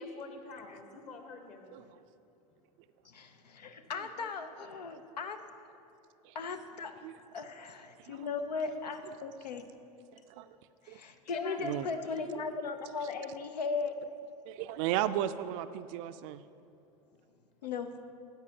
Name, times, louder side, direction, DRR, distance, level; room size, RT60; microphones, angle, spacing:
voice 1, 0.0-1.8 11.3-12.4, left 3 dB, 35° left, 5 dB, 1.2 m, -45 dB
voice 2, 3.0-5.4 6.3-7.1 7.3-9.6 10.8-13.9 17.6-17.9, left 4 dB, 85° left, 8 dB, 0.6 m, -37 dB
voice 3, 10.1-10.6 10.9-11.0 11.6-11.9 14.5-16.4, right 12 dB, 50° right, 12 dB, 0.4 m, -35 dB
13.5 x 9.1 x 2.8 m, 2.7 s
hypercardioid pair, 95°, 20 cm